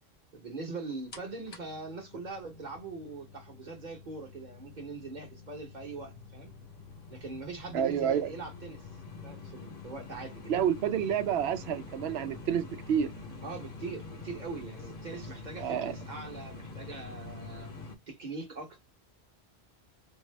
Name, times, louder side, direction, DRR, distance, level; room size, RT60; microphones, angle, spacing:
voice 1, 0.3-6.5 7.1-8.8 9.2-10.5 13.4-17.7 18.1-18.8, right 3 dB, 45° right, 1.0 m, -42 dB
sound 1, 1.1-18.0, left 3 dB, 60° left, 1.0 m, -46 dB
voice 2, 7.7-8.3 10.5-13.1 15.6-16.0, right 9 dB, 80° right, 0.8 m, -29 dB
2.6 x 2.4 x 3.2 m
omnidirectional pair, 1.1 m